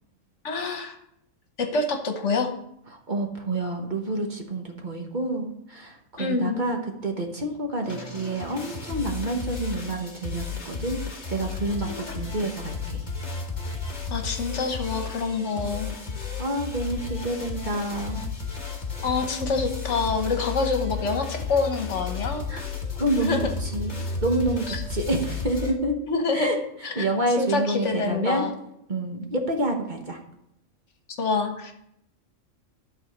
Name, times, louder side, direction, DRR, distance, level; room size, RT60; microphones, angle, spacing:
voice 1, 0.4-1.0 1.6-2.5 6.2-6.7 11.8-12.2 14.1-15.9 19.0-22.4 23.2-23.5 24.7-24.8 26.1-26.6 26.8-27.0 27.4-28.5 31.1-31.7, left 4 dB, 65° left, 5 dB, 1.4 m, -26 dB
voice 2, 2.9-11.0 11.3-13.0 15.9-16.0 16.4-18.3 22.5-22.6 22.9-25.9 26.3-28.5 28.9-30.2, right 1 dB, 40° right, 2 dB, 1.3 m, -28 dB
sound 1, 7.8-25.7, left 5 dB, 35° left, 1.6 m, -33 dB
12.0 x 4.1 x 6.6 m, 0.77 s
omnidirectional pair, 1.3 m